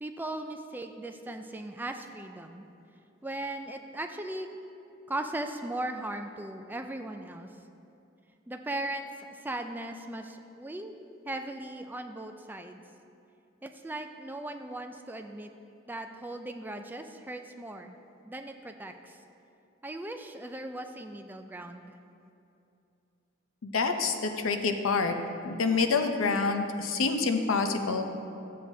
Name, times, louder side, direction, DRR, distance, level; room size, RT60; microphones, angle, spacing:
voice 1, 0.0-2.7 3.2-4.5 5.1-7.5 8.5-10.9 11.3-12.8 13.6-15.5 15.9-18.0 18.2-19.2 19.8-22.0, right 1 dB, 10° right, 6 dB, 0.3 m, -38 dB
voice 2, 23.6-25.1 25.4-28.1, left 4 dB, 85° left, 6 dB, 0.6 m, -27 dB
12.0 x 7.5 x 2.7 m, 2.7 s
head